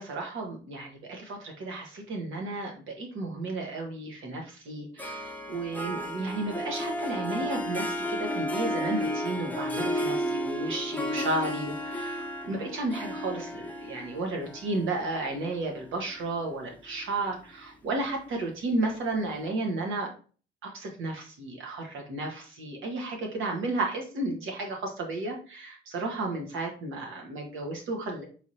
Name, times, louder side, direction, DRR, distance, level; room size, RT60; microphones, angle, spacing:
voice 1, 0.0-20.1 20.6-28.2, right 2 dB, 80° right, 2 dB, 1.4 m, -33 dB
Harp, 5.0-16.4, equal, 10° left, 0.8 m, -33 dB
4.6 x 3.5 x 2.8 m, 0.38 s
cardioid pair, 90°, 20 cm